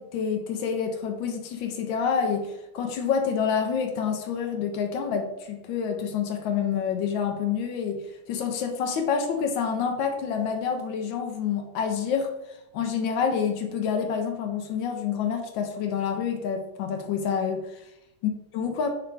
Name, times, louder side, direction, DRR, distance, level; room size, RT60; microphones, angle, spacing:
voice 1, 0.0-12.3 12.7-17.8 18.2-18.9, left 6 dB, 85° left, 4 dB, 1.4 m, -28 dB
4.4 x 2.5 x 4.4 m, 0.89 s
omnidirectional pair, 2.0 m